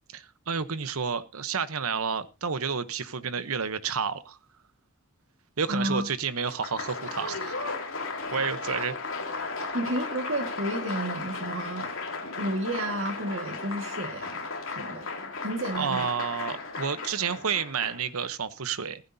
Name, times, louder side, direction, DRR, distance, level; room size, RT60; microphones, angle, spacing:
voice 1, 0.1-4.4 5.6-7.6 8.3-9.0 15.7-19.0, right 6 dB, 85° right, 13 dB, 0.9 m, -30 dB
voice 2, 5.7-6.0 9.7-11.9 12.4-14.5 14.8-15.1 15.4-16.1, right 1 dB, 60° right, 3 dB, 1.8 m, -31 dB
Applause, 6.4-18.3, left 4 dB, 75° left, 2.7 m, -35 dB
15.5 x 14.0 x 2.7 m, 0.29 s
head